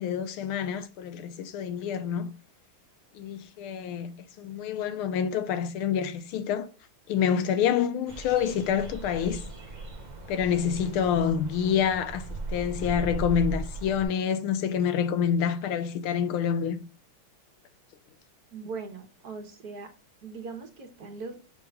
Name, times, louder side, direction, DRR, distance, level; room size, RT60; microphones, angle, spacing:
voice 1, 0.0-2.3 3.1-4.1 4.4-6.7 7.1-9.4 10.3-12.2 12.5-16.8, left 8 dB, 85° left, 1.6 m, -27 dB
sound 1, 8.1-14.1, right 2 dB, 35° right, 0.7 m, -38 dB
voice 2, 18.5-19.9 20.2-21.4, right 4 dB, 55° right, 1.4 m, -40 dB
6.6 x 3.7 x 5.2 m
omnidirectional pair, 2.3 m